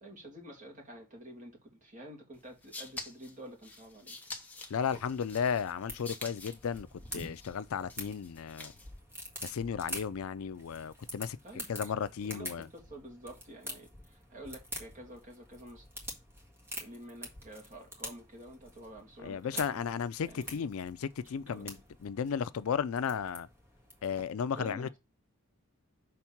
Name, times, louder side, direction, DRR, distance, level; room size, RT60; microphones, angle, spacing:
voice 1, 0.0-4.2 11.4-11.9 12.2-15.8 16.8-19.8 20.2-20.6 21.5-21.8 24.5-24.9, right 1 dB, 35° right, 2.1 m, -49 dB
sound 1, 2.4-9.0, left 3 dB, 5° left, 0.9 m, -47 dB
voice 2, 4.7-6.9 7.1-8.7 9.4-11.4 11.7-12.7 19.2-21.8 22.0-23.5 24.0-25.0, left 7 dB, 70° left, 0.4 m, -34 dB
sound 2, 4.8-24.2, equal, 10° right, 1.6 m, -47 dB
5.9 x 3.5 x 5.9 m
head